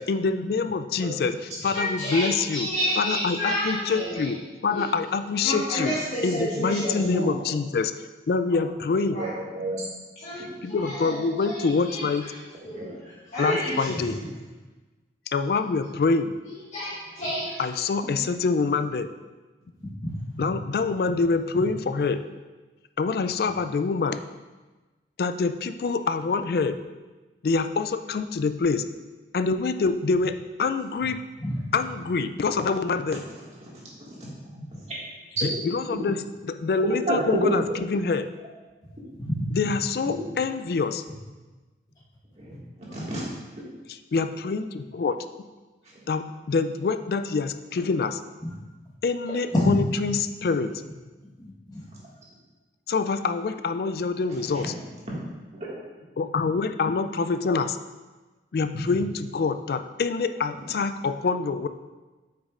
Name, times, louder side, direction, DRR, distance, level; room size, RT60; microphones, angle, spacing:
voice 1, 0.0-1.4 1.6-2.7 3.0-4.4 4.6-6.0 6.2-7.9 8.3-9.2 10.6-12.3 13.4-14.2 15.3-16.3 17.6-19.1 20.4-22.2 23.0-24.2 25.2-26.8 27.4-28.8 29.3-31.2 31.7-33.2 35.4-38.3 39.5-41.0 44.1-45.2 46.1-48.2 49.0-50.7 52.9-54.7 56.2-57.8 58.5-61.7, left 4 dB, 60° left, 10 dB, 0.3 m, -26 dB
voice 2, 1.7-4.3 4.7-4.9 5.4-7.4 8.5-8.6 9.1-9.3 10.2-14.3 16.4-17.6, equal, 40° left, -11 dB, 1.5 m, -31 dB
voice 3, 9.2-9.8 12.8-12.9 33.5-34.1 34.7-34.9 35.4-35.6 37.1-37.6 42.4-43.3 45.8-45.9 54.3-54.7 55.5-55.7, right 2 dB, 40° right, -6 dB, 1.9 m, -30 dB
voice 4, 19.8-20.5 31.4-31.6 39.2-39.5 48.4-48.5 49.5-49.7 51.4-51.9, left 1 dB, 20° left, -5 dB, 1.3 m, -27 dB
8.3 x 6.0 x 2.5 m, 1.2 s
head